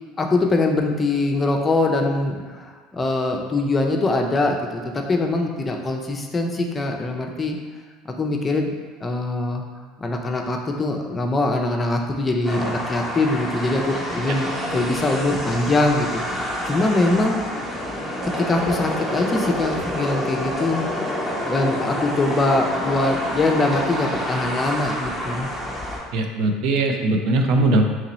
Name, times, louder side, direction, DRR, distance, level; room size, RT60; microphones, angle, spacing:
voice 1, 0.2-7.6 8.1-8.7 9.0-9.6 10.0-17.8 18.5-20.9 21.4-25.5, left 2 dB, 25° left, 2 dB, 0.5 m, -23 dB
sound 1, 12.4-26.0, equal, 5° right, 0.9 m, -28 dB
voice 2, 26.1-27.8, right 2 dB, 65° right, 4 dB, 0.4 m, -20 dB
3.0 x 2.9 x 4.0 m, 1.5 s
supercardioid pair, 95°, 0 cm